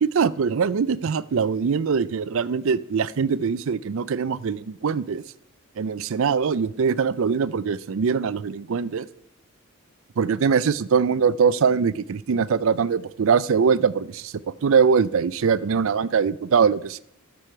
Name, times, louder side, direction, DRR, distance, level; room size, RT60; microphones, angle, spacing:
voice 1, 0.0-5.2 5.8-9.1 10.2-14.3 14.6-17.0, right 6 dB, 60° right, 18 dB, 0.4 m, -22 dB
13.5 x 6.2 x 4.4 m, 0.69 s
head